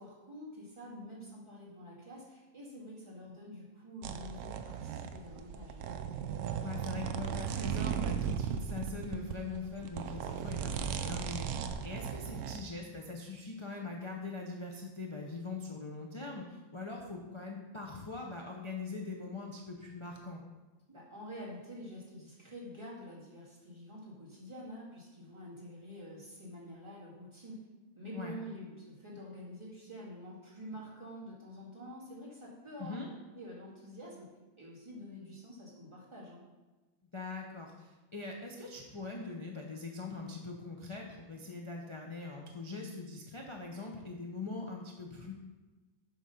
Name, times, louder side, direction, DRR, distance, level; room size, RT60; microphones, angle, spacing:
voice 1, 0.0-5.8 20.9-27.6 28.0-33.0 33.3-34.3 34.6-36.4, equal, 20° right, -7 dB, 2.2 m, -47 dB
sound 1, 4.0-12.6, right 8 dB, 75° right, 1.0 m, -36 dB
voice 2, 6.6-20.4 28.1-28.4 32.8-33.1 37.1-45.3, left 3 dB, 35° left, -1 dB, 0.4 m, -42 dB
8.0 x 3.8 x 5.6 m, 1.2 s
omnidirectional pair, 1.6 m